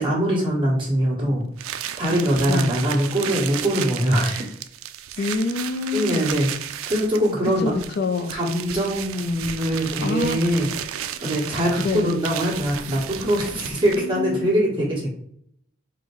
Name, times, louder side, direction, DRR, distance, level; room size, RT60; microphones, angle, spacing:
voice 1, 0.0-1.4 2.0-4.5 5.2-5.3 5.9-6.5 6.9-7.7 8.3-10.7 11.2-15.1, equal, 25° right, -5 dB, 1.6 m, -22 dB
sound 1, 1.6-14.2, right 10 dB, 80° right, 0.4 m, -33 dB
voice 2, 5.2-6.3 7.6-8.3 9.7-10.4 11.8-12.2 14.0-14.5, left 4 dB, 50° left, 7 dB, 0.4 m, -26 dB
4.5 x 2.1 x 4.6 m, 0.69 s
head